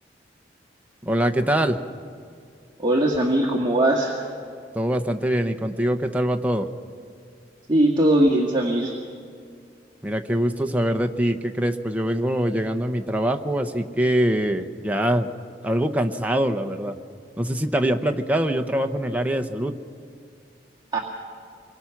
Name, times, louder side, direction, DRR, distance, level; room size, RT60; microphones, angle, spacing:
voice 1, 1.0-1.8 4.7-6.7 10.0-15.3 15.6-17.0 17.4-19.7, right 1 dB, 10° right, 5 dB, 0.9 m, -23 dB
voice 2, 2.8-4.3 7.7-8.9 20.9-21.0, right 1 dB, 25° right, -2 dB, 1.9 m, -20 dB
25.5 x 22.0 x 5.9 m, 2.2 s
head